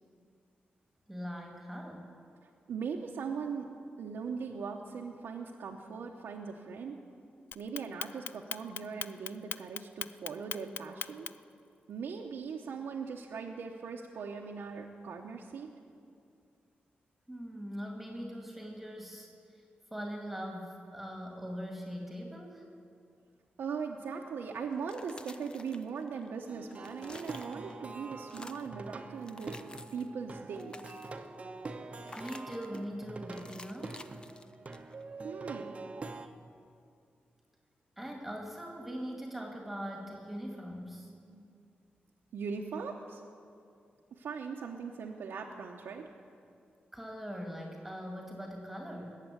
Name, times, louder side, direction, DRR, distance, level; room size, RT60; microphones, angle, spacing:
voice 1, 1.1-2.1 17.3-19.3 19.9-22.6 32.2-34.1 38.0-41.1 46.9-49.1, equal, 5° right, 1 dB, 2.2 m, -41 dB
voice 2, 2.4-3.7 4.0-7.0 7.5-11.3 11.9-15.7 23.6-29.6 29.9-30.8 35.2-35.8 41.3-41.5 42.3-43.2 44.1-46.1, right 5 dB, 85° right, 0 dB, 0.9 m, -40 dB
Clock, 7.5-11.5, left 8 dB, 75° left, 0.4 m, -38 dB
sound 1, 24.7-26.3 26.6-27.9 28.2-28.8 29.2-30.1 30.5-31.3 32.0-32.9 33.3-35.0, left 2 dB, 25° left, 0.6 m, -51 dB
Plucked string instrument, 26.5-36.3, right 3 dB, 35° right, 0.9 m, -45 dB
19.5 x 7.6 x 9.2 m, 2.4 s
wide cardioid pair, 110°, 4 cm